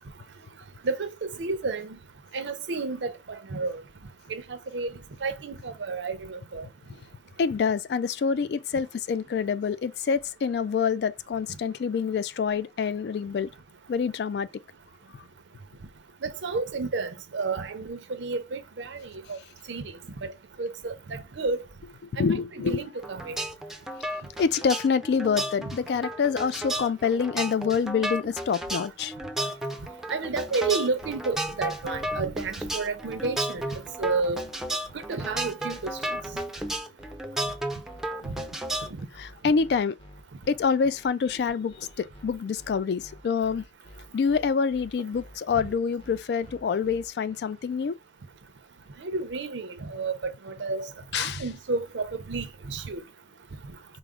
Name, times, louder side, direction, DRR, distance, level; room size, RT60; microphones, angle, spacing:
voice 1, 0.8-2.0 2.3-3.8 4.3-4.9 5.2-6.7 16.2-19.4 19.7-19.9 20.2-20.3 20.6-21.6 22.2-23.4 25.7-25.8 30.1-34.4 34.9-36.2 38.2-38.4 49.0-53.0, right 3 dB, 85° right, 0.6 m, -31 dB
voice 2, 7.4-13.5 13.9-14.5 22.1-22.9 24.4-29.1 39.2-40.0 40.5-43.6 44.1-48.0 51.1-51.4, left 6 dB, 60° left, 0.3 m, -26 dB
sound 1, 23.0-39.0, right 1 dB, ahead, 0.4 m, -33 dB
sound 2, 33.5-47.1, equal, 30° left, 0.8 m, -50 dB
4.7 x 2.0 x 3.6 m
head